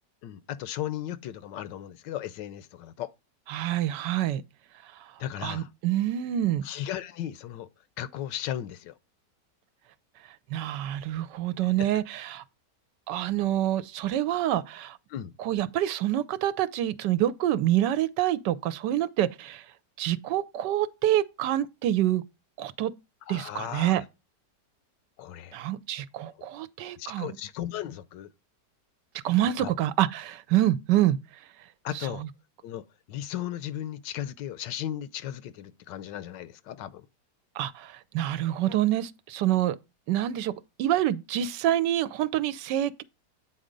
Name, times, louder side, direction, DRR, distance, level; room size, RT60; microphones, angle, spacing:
voice 1, 0.2-3.1 5.2-5.7 6.6-7.7 8.0-8.9 11.6-11.9 15.1-15.3 23.3-24.0 25.2-25.6 26.4-26.5 27.0-28.3 29.6-29.7 31.8-32.2 32.6-37.0, left 11 dB, 90° left, 1.3 m, -36 dB
voice 2, 3.5-4.4 5.4-6.6 10.5-12.4 13.1-15.0 15.4-19.6 20.0-22.2 22.6-22.9 23.3-24.0 25.5-27.3 29.2-31.2 32.2-32.3 37.6-39.8 40.1-40.5 40.8-43.0, right 12 dB, 80° right, 1.3 m, -26 dB
8.8 x 4.3 x 5.1 m
omnidirectional pair, 1.9 m